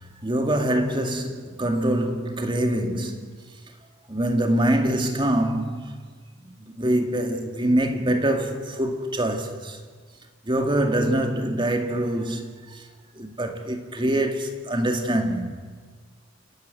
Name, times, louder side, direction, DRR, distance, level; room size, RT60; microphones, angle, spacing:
voice 1, 0.2-3.2 4.1-5.8 6.4-9.8 10.5-12.8 13.2-15.6, right 1 dB, 25° right, 2.1 m, -24 dB
28.5 x 12.0 x 9.3 m
head